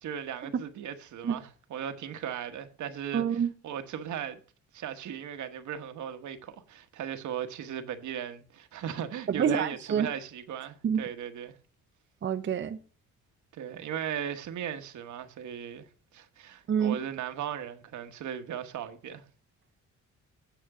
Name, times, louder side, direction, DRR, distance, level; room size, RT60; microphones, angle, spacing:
voice 1, 0.0-4.4 4.7-11.5 13.5-15.9 16.1-19.2, right 9 dB, 75° right, 1.2 m, -37 dB
voice 2, 3.1-3.5 9.4-10.1 10.8-11.0 12.2-12.8 16.7-17.0, right 7 dB, 40° right, 0.7 m, -27 dB
9.1 x 6.7 x 4.8 m
cardioid pair, 110°, 30 cm